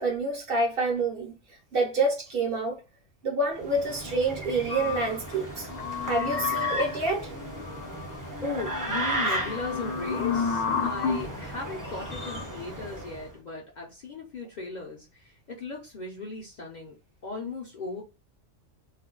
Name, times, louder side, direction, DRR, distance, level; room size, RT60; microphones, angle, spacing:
voice 1, 0.0-1.3 1.7-2.8 3.2-5.7 6.0-7.3, right 2 dB, 55° right, 0.7 m, -27 dB
sound 1, 3.5-13.3, right 1 dB, 25° right, 0.4 m, -35 dB
sound 2, 4.7-11.3 12.0-12.4, left 6 dB, 70° left, 0.9 m, -32 dB
voice 2, 8.4-16.9 17.2-18.0, left 3 dB, 50° left, 0.5 m, -37 dB
2.4 x 2.2 x 3.6 m
omnidirectional pair, 1.3 m